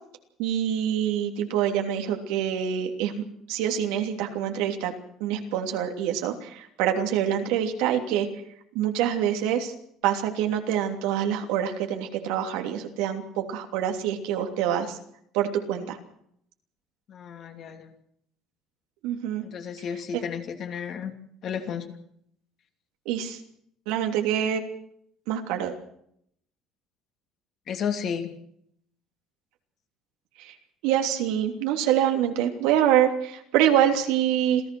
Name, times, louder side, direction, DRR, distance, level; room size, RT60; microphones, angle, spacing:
voice 1, 0.4-4.9 5.2-8.3 8.7-9.7 10.0-15.0 15.3-16.0 19.0-19.4 20.1-20.2 23.0-23.4 23.9-24.6 25.3-25.7 30.4-30.5 30.8-34.6, right 10 dB, 85° right, 4 dB, 3.1 m, -25 dB
voice 2, 17.1-17.9 19.4-21.1 21.4-21.9 27.7-28.3, left 7 dB, 50° left, 5 dB, 2.9 m, -32 dB
27.0 x 15.5 x 6.2 m, 0.70 s
cardioid pair, 125°, 0 cm